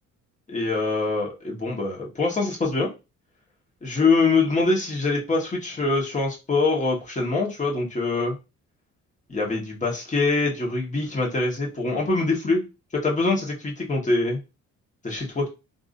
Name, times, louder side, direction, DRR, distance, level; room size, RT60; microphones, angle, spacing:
voice 1, 0.5-2.9 3.8-8.4 9.3-12.6 12.9-14.4 15.0-15.5, left 3 dB, 25° left, -2 dB, 1.3 m, -24 dB
3.4 x 2.6 x 2.5 m, 0.28 s
cardioid pair, 90°, 30 cm